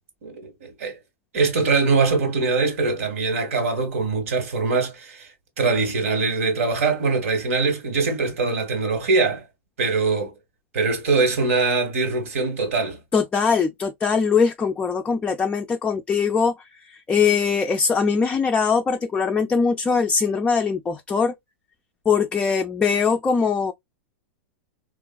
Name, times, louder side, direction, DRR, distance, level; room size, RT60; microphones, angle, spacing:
voice 1, 0.2-1.0 1.3-9.4 9.8-10.3 10.7-13.0, right 4 dB, 80° right, 1.4 m, -22 dB
voice 2, 13.1-21.3 22.1-23.7, left 5 dB, 15° left, 0.3 m, -21 dB
3.7 x 2.4 x 2.2 m
hypercardioid pair, 130°, 7 cm